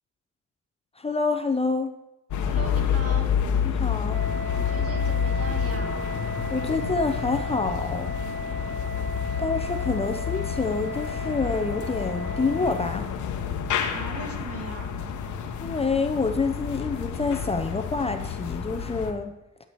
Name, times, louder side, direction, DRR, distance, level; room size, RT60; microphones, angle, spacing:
voice 1, 1.0-2.0 3.6-4.2 6.5-8.1 9.4-13.1 15.6-19.3, left 4 dB, 20° left, 6 dB, 0.6 m, -27 dB
sound 1, 2.3-19.1, left 7 dB, 75° left, 1.0 m, -29 dB
voice 2, 2.4-3.3 4.1-4.2 4.5-5.9 13.9-14.9, right 3 dB, 50° right, 4 dB, 1.5 m, -38 dB
Wind instrument woodwind instrument, 4.1-13.0, left 2 dB, 25° right, 2.9 m, -35 dB
11.0 x 6.0 x 4.6 m, 0.93 s
cardioid pair, 90°, 30 cm